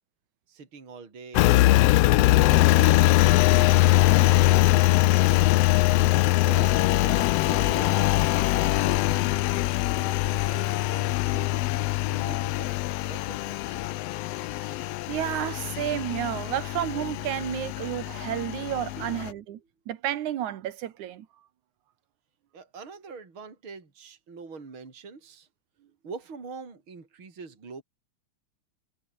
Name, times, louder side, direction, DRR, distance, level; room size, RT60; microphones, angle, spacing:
voice 1, 0.5-2.3 2.6-5.5 6.4-11.5 12.1-13.9 19.0-19.2 22.5-25.5 26.0-27.8, right 4 dB, 40° right, 4.8 m, -44 dB
Engine, 1.3-19.3, left 18 dB, 85° left, 1.4 m, -22 dB
voice 2, 14.5-19.6 19.9-21.3, right 12 dB, 75° right, 2.7 m, -31 dB
omnidirectional pair, 3.5 m